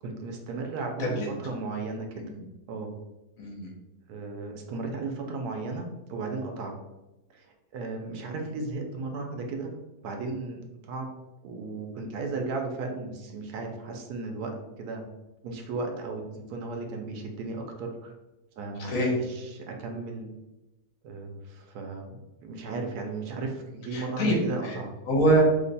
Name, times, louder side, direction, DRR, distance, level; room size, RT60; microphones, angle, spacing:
voice 1, 0.0-2.3 2.7-2.9 4.1-6.7 7.3-7.5 7.7-9.7 10.0-11.1 11.4-15.0 15.4-18.1 18.6-20.3 21.0-24.9, right 3 dB, 80° right, 3 dB, 1.1 m, -35 dB
voice 2, 3.4-3.7 18.9-19.2 23.9-24.4 24.6-24.8 25.1-25.4, right 1 dB, 65° left, -1 dB, 1.3 m, -24 dB
3.1 x 2.2 x 3.9 m, 1.0 s
omnidirectional pair, 1.6 m